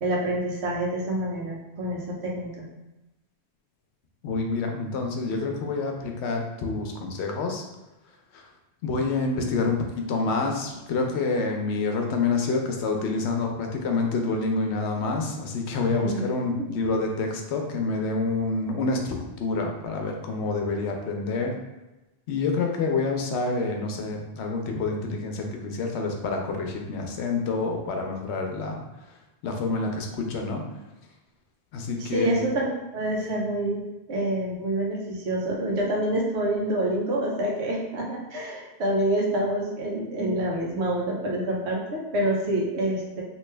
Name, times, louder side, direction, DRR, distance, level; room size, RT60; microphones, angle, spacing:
voice 1, 0.0-2.6 16.0-16.3 16.6-16.7 32.1-33.8 34.1-43.2, right 1 dB, 75° right, -2 dB, 1.0 m, -27 dB
voice 2, 4.2-7.6 8.3-8.5 8.8-21.6 22.3-30.6 31.7-32.4, left 3 dB, 80° left, 2 dB, 0.9 m, -27 dB
3.1 x 2.7 x 3.2 m, 1.0 s
omnidirectional pair, 1.1 m